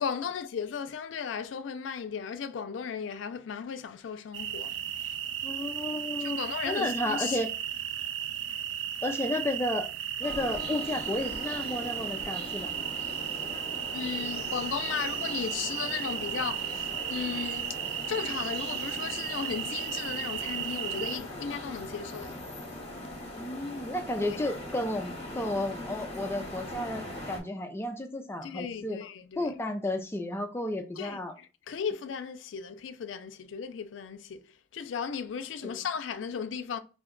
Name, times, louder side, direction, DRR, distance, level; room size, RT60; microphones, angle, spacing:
voice 1, 0.0-5.1 6.2-7.4 13.9-17.8 18.1-22.4 24.2-24.4 28.4-29.5 31.0-34.5 34.7-36.8, left 6 dB, 90° left, 0.4 m, -36 dB
sound 1, 4.3-21.2, right 10 dB, 90° right, 0.4 m, -35 dB
voice 2, 5.4-6.4 6.7-7.5 9.0-9.9 10.2-12.8 23.4-29.0 29.4-31.4 35.6-35.8, left 1 dB, 15° left, 0.3 m, -32 dB
sound 2, 10.2-27.4, left 1 dB, 35° left, 0.8 m, -41 dB
2.7 x 2.1 x 3.7 m
head